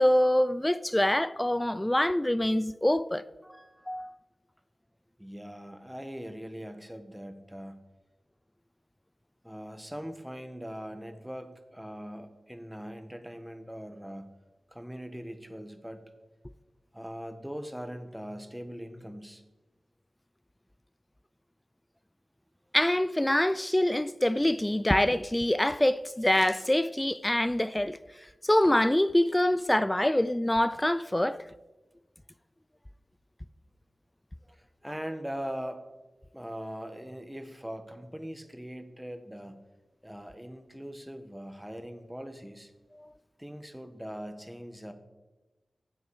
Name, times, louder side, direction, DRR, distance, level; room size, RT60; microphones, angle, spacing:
voice 1, 0.0-3.2 3.9-4.1 22.7-28.0 28.4-31.4 43.0-43.1, left 1 dB, 15° left, 0.4 m, -25 dB
voice 2, 3.4-4.1 5.2-7.8 9.4-14.3 14.7-16.0 16.9-19.4 34.5-35.8 36.3-39.6 40.0-42.7 43.4-44.9, equal, 5° right, 1.4 m, -41 dB
14.0 x 8.0 x 4.9 m
cardioid pair, 45°, 0 cm